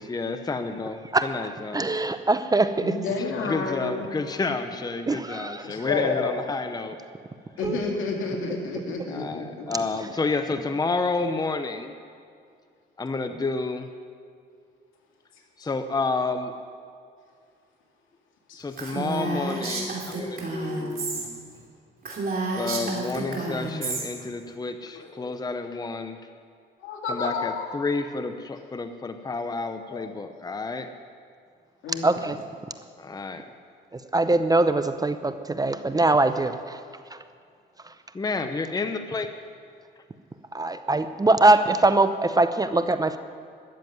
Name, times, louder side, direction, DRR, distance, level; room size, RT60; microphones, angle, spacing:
voice 1, 0.0-1.9 3.4-7.0 9.1-11.9 13.0-13.9 15.6-16.5 18.6-21.4 22.6-26.2 27.1-30.9 33.0-33.5 38.1-39.3, left 3 dB, 20° left, 8 dB, 0.8 m, -30 dB
voice 2, 1.1-2.9 5.1-5.6 7.6-7.8 32.0-32.4 33.9-36.8 37.1-37.2 40.5-43.2, right 2 dB, 20° right, 11 dB, 0.6 m, -22 dB
voice 3, 2.8-4.1 5.6-6.3 7.6-9.6 15.6-15.7 18.5-18.6 23.3-23.4 24.9-25.4 26.8-27.7 29.9-30.1 31.8-32.2, left 4 dB, 80° left, 0 dB, 2.5 m, -30 dB
Female speech woman speaking, 18.8-21.3 21.6-21.7 22.0-24.0, right 3 dB, 50° right, 3.0 m, -30 dB
13.0 x 7.5 x 9.4 m, 2.2 s
cardioid pair, 90°, 20 cm